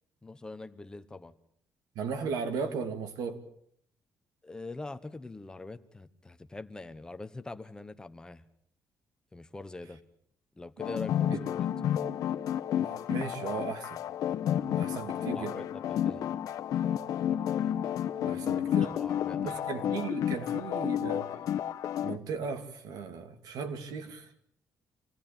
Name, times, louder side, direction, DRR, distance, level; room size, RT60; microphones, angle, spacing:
voice 1, 0.2-1.3 4.4-8.4 9.3-10.0 10.5-11.7 15.1-16.3 18.3-19.6 20.4-20.5, left 2 dB, 10° left, 1.0 m, -44 dB
voice 2, 1.9-3.4 11.3-11.4 12.8-14.0 14.7-15.6 18.2-18.9 19.3-21.3 22.0-24.3, right 5 dB, 85° right, 2.9 m, -36 dB
sound 1, 10.8-22.2, left 10 dB, 70° left, 1.1 m, -31 dB
27.0 x 18.0 x 8.9 m
cardioid pair, 160°, 6 cm